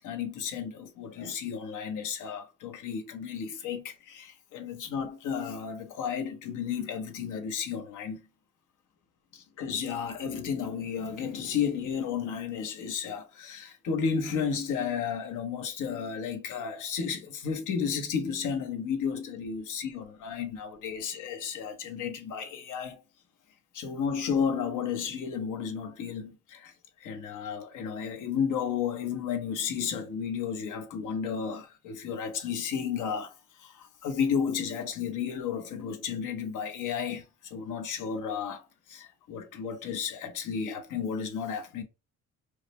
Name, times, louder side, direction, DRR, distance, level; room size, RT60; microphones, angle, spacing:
voice 1, 0.0-8.2 9.3-23.0 23.7-26.7 27.0-33.3 33.6-41.8, left 7 dB, 85° left, 1.0 m, -33 dB
4.9 x 2.2 x 3.0 m
cardioid pair, 90°, 30 cm